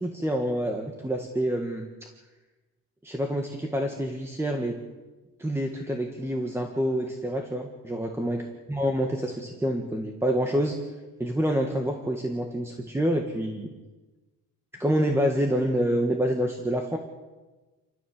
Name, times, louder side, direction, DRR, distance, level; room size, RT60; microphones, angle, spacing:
voice 1, 0.0-1.9 3.0-4.8 5.4-8.4 8.7-10.8 11.2-13.7 14.7-17.0, equal, 10° right, 3 dB, 1.7 m, -27 dB
28.5 x 14.0 x 7.2 m, 1.2 s
cardioid pair, 145°, 33 cm